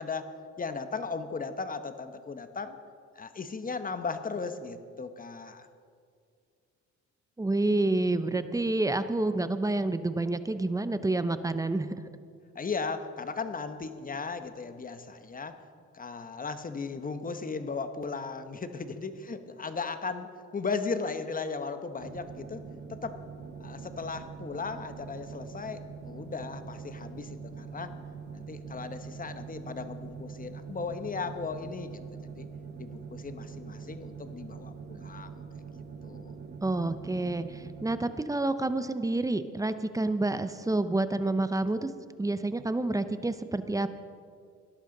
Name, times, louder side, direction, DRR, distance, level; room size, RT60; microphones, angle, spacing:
voice 1, 0.0-2.8 3.2-5.7 12.5-15.6 15.9-23.2 23.6-28.0 28.3-32.0 32.4-32.5 32.8-35.3 36.0-36.3, left 4 dB, 30° left, 10 dB, 0.9 m, -36 dB
voice 2, 7.4-11.9 36.6-41.9 42.2-43.9, right 2 dB, 10° right, 11 dB, 0.6 m, -28 dB
sound 1, 22.0-38.0, right 5 dB, 35° right, 1.0 m, -43 dB
18.0 x 11.5 x 3.9 m, 2.2 s
cardioid pair, 90°, 30 cm